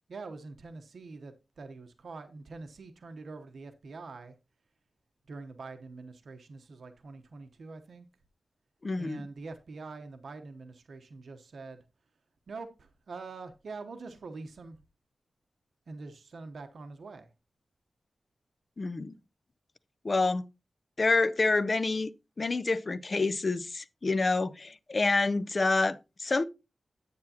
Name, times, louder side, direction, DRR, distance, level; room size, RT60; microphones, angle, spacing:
voice 1, 0.1-4.3 5.3-8.1 8.9-11.8 12.5-14.8 15.9-17.3, right 3 dB, 85° right, 0.9 m, -44 dB
voice 2, 8.8-9.2 18.8-19.1 20.0-20.5 21.0-22.1 22.4-26.4, left 3 dB, 40° left, 0.5 m, -27 dB
9.5 x 8.7 x 2.8 m
wide cardioid pair, 115°, 0 cm